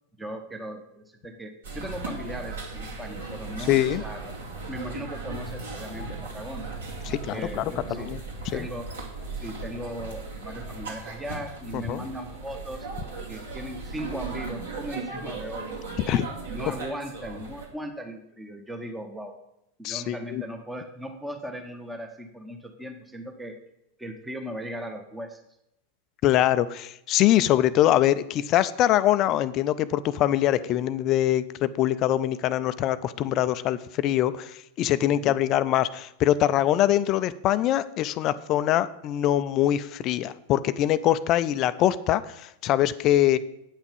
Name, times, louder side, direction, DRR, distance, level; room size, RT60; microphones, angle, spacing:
voice 1, 0.2-4.3 4.7-6.7 7.3-8.1 8.5-9.0 9.4-12.9 13.3-16.1 16.5-19.4 19.8-23.6 24.0-25.4 35.1-35.4 43.3-43.4, right 1 dB, 5° right, 5 dB, 1.1 m, -38 dB
sound 1, 1.6-17.7, right 3 dB, 65° right, 2.3 m, -37 dB
voice 2, 3.7-4.0 7.1-7.7 8.1-8.2 8.5-8.6 11.7-12.0 16.1-16.3 19.8-20.4 26.2-43.4, left 12 dB, 35° left, 15 dB, 0.4 m, -23 dB
8.9 x 6.0 x 7.0 m, 0.82 s
figure-of-eight pair, 90°, 0 cm